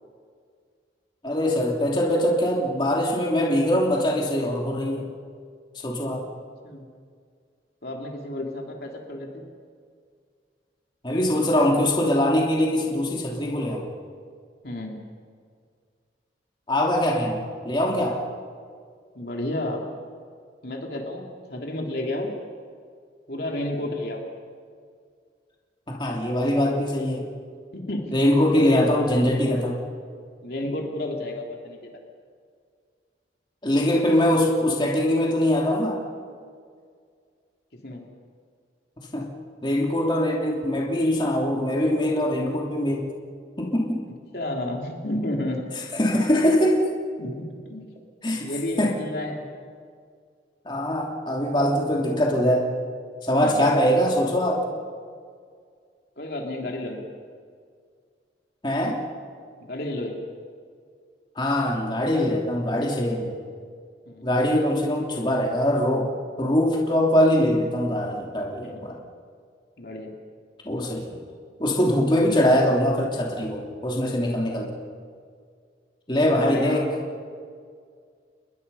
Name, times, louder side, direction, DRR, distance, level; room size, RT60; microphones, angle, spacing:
voice 1, 1.2-5.1 5.8-6.2 11.0-13.8 16.7-18.2 25.9-27.3 28.1-29.7 33.6-36.0 39.1-39.3 39.6-43.1 43.6-44.0 45.9-46.8 48.2-48.5 48.8-48.9 50.6-52.7 53.2-54.6 58.6-59.0 61.3-63.3 64.2-66.1 66.4-69.0 70.6-71.2 71.6-74.7 76.1-76.8, left 1 dB, 25° left, -2 dB, 3.0 m, -22 dB
voice 2, 7.8-9.5 14.6-15.0 19.1-19.8 20.6-22.3 23.3-24.2 27.7-28.1 28.5-29.6 30.4-31.9 37.8-38.0 44.3-45.6 47.2-47.9 48.4-49.4 53.3-53.7 56.2-57.1 59.6-60.2 64.0-64.3 68.6-68.8 69.8-70.1 76.4-76.9, left 1 dB, 55° left, 0 dB, 3.1 m, -31 dB
29.5 x 21.0 x 5.6 m, 2.1 s
head